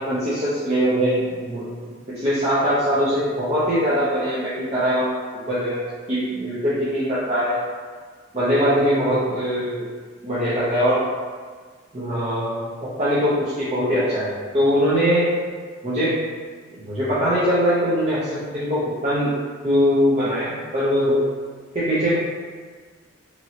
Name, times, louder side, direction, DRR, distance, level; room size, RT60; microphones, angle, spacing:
voice 1, 0.0-1.7 2.1-5.1 5.5-7.6 8.3-9.8 10.2-11.0 11.9-15.4 15.8-16.3 16.7-19.3 19.6-21.2 21.7-22.2, equal, 35° right, -11 dB, 0.6 m, -22 dB
3.1 x 2.5 x 2.8 m, 1.5 s
head